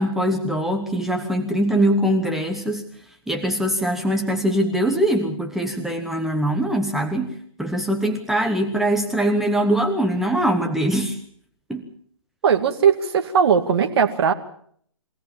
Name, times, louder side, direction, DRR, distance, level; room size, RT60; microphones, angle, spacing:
voice 1, 0.0-2.9 3.3-11.2 11.7-11.8, right 1 dB, ahead, 3 dB, 1.0 m, -22 dB
voice 2, 12.4-14.3, right 7 dB, 50° right, 5 dB, 2.2 m, -18 dB
23.5 x 17.0 x 7.4 m, 0.62 s
hypercardioid pair, 150°, 17 cm